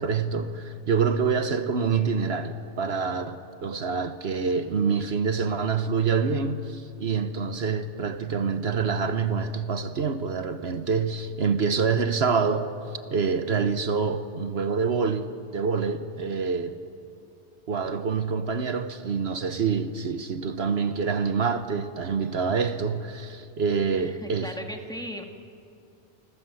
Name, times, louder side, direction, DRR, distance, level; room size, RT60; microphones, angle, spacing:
voice 1, 0.0-12.7 13.1-16.8 17.7-24.5, right 5 dB, 65° right, 1.2 m, -26 dB
voice 2, 23.9-25.2, equal, 5° left, 2.0 m, -37 dB
27.5 x 21.5 x 7.8 m
omnidirectional pair, 1.2 m